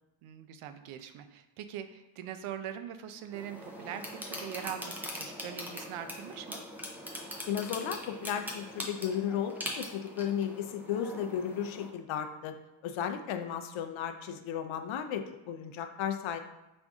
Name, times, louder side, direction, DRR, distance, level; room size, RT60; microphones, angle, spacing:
voice 1, 0.2-6.6, right 9 dB, 85° right, 9 dB, 0.6 m, -42 dB
sound 1, 3.3-11.9, equal, 5° right, 0.3 m, -42 dB
voice 2, 7.5-12.5 12.8-16.4, left 8 dB, 70° left, 7 dB, 0.5 m, -34 dB
5.1 x 2.6 x 3.5 m, 0.96 s
cardioid pair, 160°, 49 cm